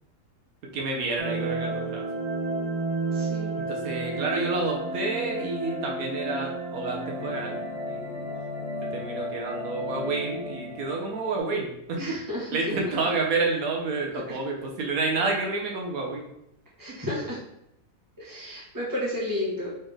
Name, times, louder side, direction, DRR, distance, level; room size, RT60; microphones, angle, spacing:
voice 1, 0.7-2.0 3.6-8.2 8.9-12.2 12.5-16.3, right 3 dB, 85° right, 0 dB, 1.3 m, -29 dB
sound 1, 1.2-11.4, right 2 dB, 35° right, 1.1 m, -32 dB
voice 2, 3.1-3.5 12.0-12.8 14.3-14.4 16.8-17.4 18.2-19.7, left 1 dB, 15° right, -6 dB, 1.3 m, -32 dB
4.1 x 3.6 x 3.4 m, 0.81 s
omnidirectional pair, 1.5 m